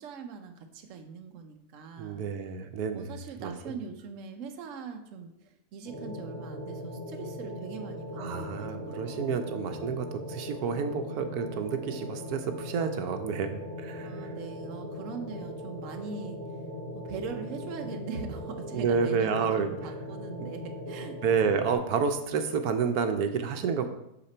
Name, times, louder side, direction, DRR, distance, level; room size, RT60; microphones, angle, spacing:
voice 1, 0.0-2.2 2.9-9.4 14.0-16.6 16.9-21.2, right 5 dB, 65° right, 5 dB, 1.1 m, -41 dB
voice 2, 2.0-3.8 8.2-14.3 18.7-19.7 20.4-20.5 21.2-23.9, right 6 dB, 85° right, 7 dB, 1.2 m, -30 dB
sound 1, 5.8-21.7, left 1 dB, 50° left, 3.1 m, -39 dB
6.9 x 5.8 x 4.3 m, 0.84 s
omnidirectional pair, 1.6 m